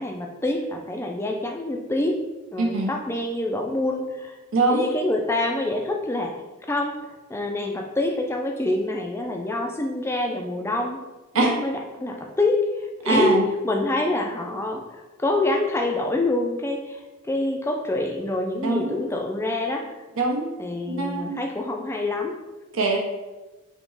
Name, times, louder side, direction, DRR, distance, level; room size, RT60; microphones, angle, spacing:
voice 1, 0.0-2.2 2.5-4.4 4.7-11.0 11.3-20.0 20.6-22.3, left 2 dB, 10° left, 2 dB, 0.3 m, -26 dB
voice 2, 2.6-2.9 4.5-4.9 11.3-11.5 13.0-13.4 18.6-19.0 20.2-20.5 20.9-21.4 22.7-23.0, right 3 dB, 70° right, 0 dB, 0.7 m, -22 dB
3.5 x 2.9 x 3.9 m, 1.1 s
head